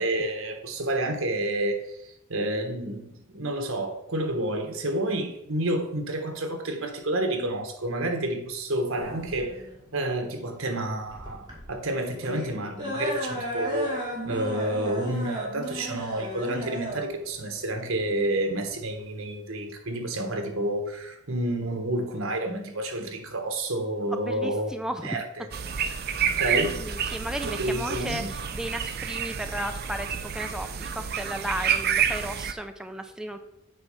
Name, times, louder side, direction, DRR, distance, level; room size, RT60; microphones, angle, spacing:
voice 1, 0.0-9.6 9.9-24.7 25.0-25.5 26.2-26.8 27.4-28.3, right 1 dB, 80° right, 5 dB, 1.3 m, -29 dB
sound 1, 9.0-19.0, equal, 20° right, 2.1 m, -35 dB
voice 2, 24.1-25.2 25.9-26.0 26.5-33.4, right 1 dB, 5° right, 6 dB, 0.4 m, -35 dB
sound 2, 25.5-32.5, right 7 dB, 50° right, 0.6 m, -29 dB
8.1 x 4.7 x 5.6 m, 0.82 s
head